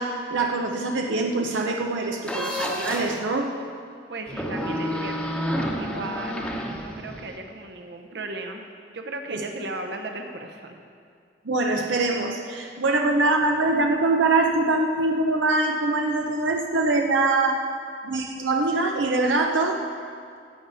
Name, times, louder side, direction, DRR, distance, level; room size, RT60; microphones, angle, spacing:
voice 1, 0.0-3.5 9.3-9.4 11.4-17.6 18.0-19.8, right 2 dB, 85° right, 2 dB, 0.7 m, -23 dB
sound 1, 2.2-3.2 4.3-7.4, equal, 5° left, 0.9 m, -29 dB
voice 2, 4.1-6.5 6.8-8.7 8.9-10.7, right 2 dB, 65° right, 4 dB, 1.0 m, -36 dB
14.5 x 8.6 x 4.1 m, 2.3 s
head